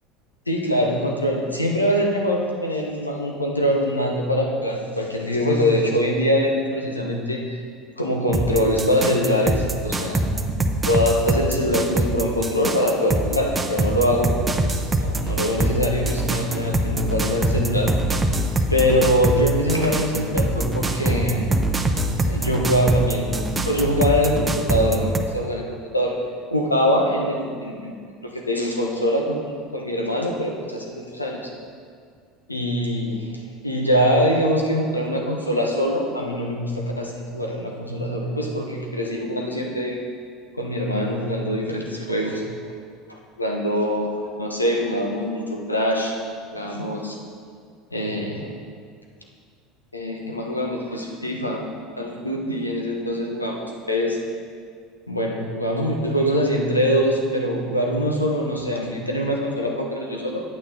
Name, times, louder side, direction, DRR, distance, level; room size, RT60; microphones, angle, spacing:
voice 1, 0.5-7.6 8.0-10.2 10.9-14.3 14.6-17.9 18.7-21.5 22.2-25.6 25.9-26.1 26.5-27.9 28.3-29.4 29.7-31.5 32.5-40.0 40.6-42.4 43.1-44.1 44.4-46.2 46.5-47.2 47.9-48.5 49.9-51.6 52.0-54.2 55.1-60.4, equal, 90° left, 0 dB, 1.1 m, -23 dB
sound 1, 8.3-25.2, right 2 dB, 15° right, 0.8 m, -24 dB
9.4 x 8.6 x 3.9 m, 2.1 s
figure-of-eight pair, 70°, 0 cm